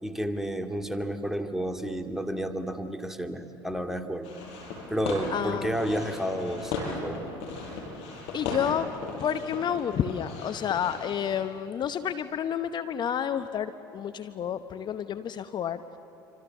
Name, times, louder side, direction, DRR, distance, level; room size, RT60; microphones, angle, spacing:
voice 1, 0.0-4.3 4.9-7.2, equal, 5° right, 6 dB, 2.2 m, -31 dB
sound 1, 4.2-11.4, left 4 dB, 65° left, 5.7 m, -37 dB
voice 2, 5.3-5.9 8.3-8.9 9.2-15.8, left 8 dB, 45° left, 11 dB, 0.9 m, -30 dB
27.5 x 25.0 x 7.3 m, 2.9 s
hypercardioid pair, 65°, 11 cm